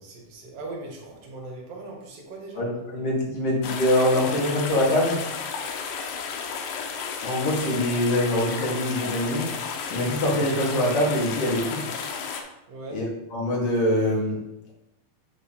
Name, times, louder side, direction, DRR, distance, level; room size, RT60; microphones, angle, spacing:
voice 1, 0.0-2.6 12.7-13.0, right 2 dB, 70° right, -1 dB, 2.9 m, -39 dB
voice 2, 2.6-5.2 7.2-9.5 9.9-11.8 12.9-14.4, left 1 dB, 50° left, -4 dB, 2.1 m, -24 dB
sound 1, 3.6-12.4, left 6 dB, 90° left, 1.7 m, -33 dB
6.9 x 3.1 x 5.5 m, 0.88 s
omnidirectional pair, 4.4 m